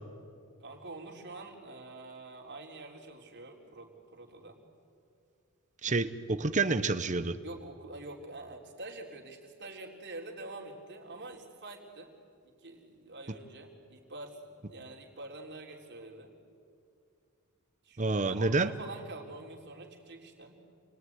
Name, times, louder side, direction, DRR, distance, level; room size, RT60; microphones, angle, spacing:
voice 1, 0.6-4.6 7.4-12.1 12.4-16.3 17.8-20.6, right 2 dB, 55° right, 0 dB, 3.9 m, -46 dB
voice 2, 5.8-7.4 18.0-18.7, right 3 dB, 35° right, 11 dB, 1.0 m, -28 dB
28.0 x 21.5 x 9.6 m, 2.3 s
head